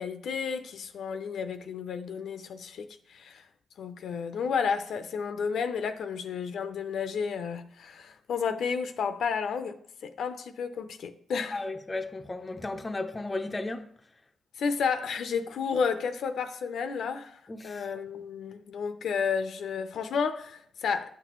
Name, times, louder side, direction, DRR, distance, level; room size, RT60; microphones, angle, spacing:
voice 1, 0.0-3.5 3.8-11.6 14.6-21.1, left 6 dB, 70° left, 0.5 m, -32 dB
voice 2, 11.5-13.9 17.5-17.8, left 2 dB, 20° left, 0.5 m, -34 dB
9.9 x 5.9 x 3.0 m
cardioid pair, 120°, 0 cm